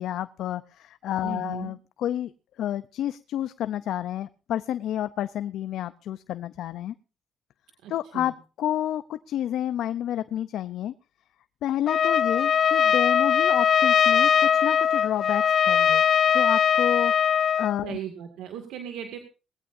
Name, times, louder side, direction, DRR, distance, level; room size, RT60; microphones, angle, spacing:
voice 1, 0.0-2.3 2.6-6.9 7.9-10.9 11.6-16.0 16.3-18.0, left 11 dB, 80° left, 13 dB, 0.6 m, -30 dB
voice 2, 1.2-1.7 7.8-8.3 17.8-19.2, right 9 dB, 85° right, 5 dB, 2.1 m, -37 dB
Trumpet, 11.9-17.7, left 8 dB, 50° left, 1.0 m, -21 dB
20.0 x 16.0 x 2.7 m, 0.33 s
cardioid pair, 90°, 0 cm